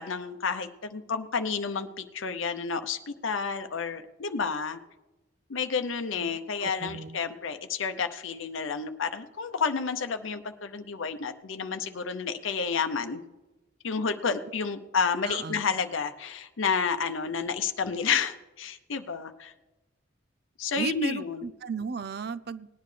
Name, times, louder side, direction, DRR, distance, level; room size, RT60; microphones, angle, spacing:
voice 1, 0.0-4.8 5.5-13.2 13.8-19.5 20.6-21.4, left 5 dB, 90° left, 8 dB, 0.7 m, -30 dB
voice 2, 6.2-7.2 15.3-15.6 20.8-22.7, right 5 dB, 55° right, 15 dB, 0.5 m, -35 dB
19.0 x 10.5 x 3.3 m, 1.1 s
head